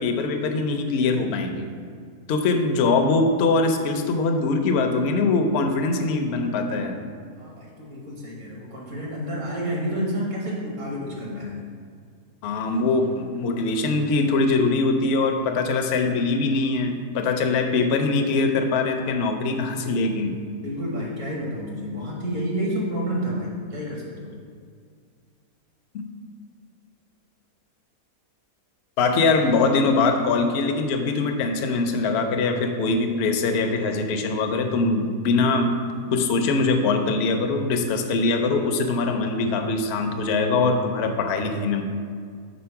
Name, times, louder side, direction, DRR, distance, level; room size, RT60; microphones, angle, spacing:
voice 1, 0.0-1.7 2.3-7.0 12.4-20.3 25.9-26.0 29.0-35.7 36.1-41.8, left 3 dB, 65° left, 5 dB, 0.7 m, -22 dB
voice 2, 7.4-11.7 20.6-24.3, equal, 60° right, -3 dB, 1.6 m, -30 dB
5.2 x 4.0 x 5.7 m, 2.1 s
omnidirectional pair, 1.6 m